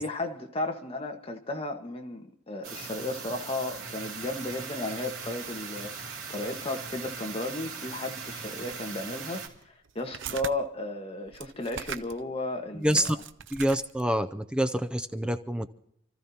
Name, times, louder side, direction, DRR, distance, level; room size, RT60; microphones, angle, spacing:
voice 1, 0.0-13.0, left 2 dB, 30° left, 3 dB, 1.5 m, -34 dB
sound 1, 2.6-9.5, right 5 dB, 90° right, 3.1 m, -39 dB
sound 2, 8.7-8.8 9.5-10.5 11.3-12.2 12.5-12.6 12.8-14.1, right 8 dB, 70° right, 0.6 m, -40 dB
voice 2, 12.7-13.2 13.5-15.7, equal, 5° right, 12 dB, 0.5 m, -27 dB
28.5 x 14.0 x 2.9 m, 0.76 s
head